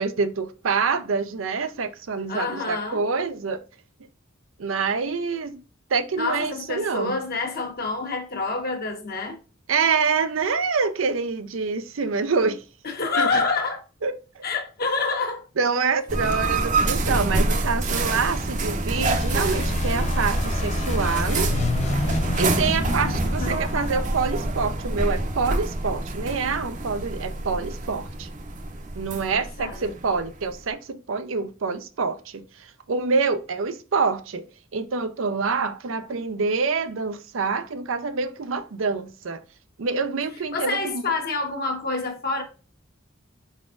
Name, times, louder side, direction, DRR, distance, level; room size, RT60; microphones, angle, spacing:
voice 1, 0.0-3.6 4.6-5.6 5.9-7.1 9.7-12.6 13.1-13.4 14.0-14.4 15.6-21.5 22.4-28.3 28.9-34.4 34.7-39.4 39.8-41.0, right 4 dB, 80° right, 0.6 m, -26 dB
voice 2, 2.3-3.0 6.2-9.4 12.8-13.8 14.4-15.4 23.0-23.1 23.4-23.6 29.3-29.9 40.5-42.4, left 3 dB, 50° left, 1.2 m, -27 dB
sound 1, 16.1-30.7, right 2 dB, 40° right, 0.7 m, -27 dB
sound 2, 19.0-25.6, left 2 dB, 35° left, 0.5 m, -29 dB
4.7 x 4.1 x 2.4 m
head